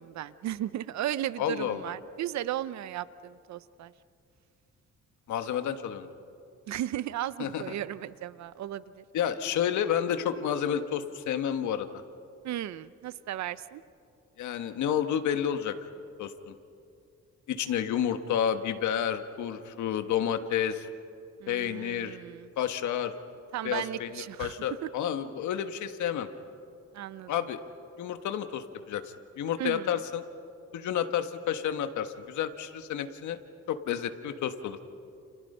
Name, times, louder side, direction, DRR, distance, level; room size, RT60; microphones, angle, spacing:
voice 1, 0.0-3.9 6.7-9.0 12.4-13.8 21.4-22.5 23.5-24.9 26.9-27.3 29.6-29.9, right 12 dB, 70° right, 16 dB, 0.7 m, -35 dB
voice 2, 1.4-1.8 5.3-6.1 7.4-7.6 9.1-12.0 14.4-15.7 16.2-16.5 17.5-20.9 21.5-22.2 22.6-23.1 23.6-26.3 27.3-27.6 28.0-29.0 29.4-30.2 30.7-33.4 33.7-34.8, left 9 dB, 85° left, 8 dB, 1.5 m, -30 dB
30.0 x 29.5 x 5.6 m, 2.5 s
cardioid pair, 130°, 29 cm